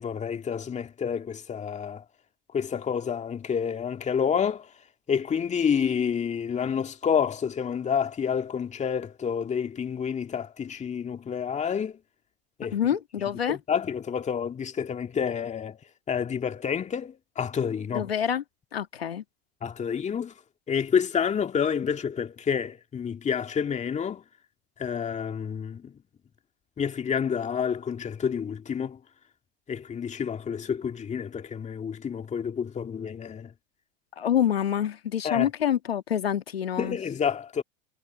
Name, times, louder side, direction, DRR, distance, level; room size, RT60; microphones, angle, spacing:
voice 1, 0.0-2.0 2.5-4.7 5.1-12.0 12.6-12.8 13.5-15.8 16.1-18.1 19.6-20.3 20.7-24.2 24.8-25.9 26.8-29.0 29.7-33.5 35.2-35.5 36.8-37.6, left 7 dB, 25° left, 2.1 m, -29 dB
voice 2, 12.7-13.6 17.9-18.4 18.7-19.2 34.2-37.0, left 9 dB, 90° left, 2.0 m, -26 dB
hypercardioid pair, 95°, 29 cm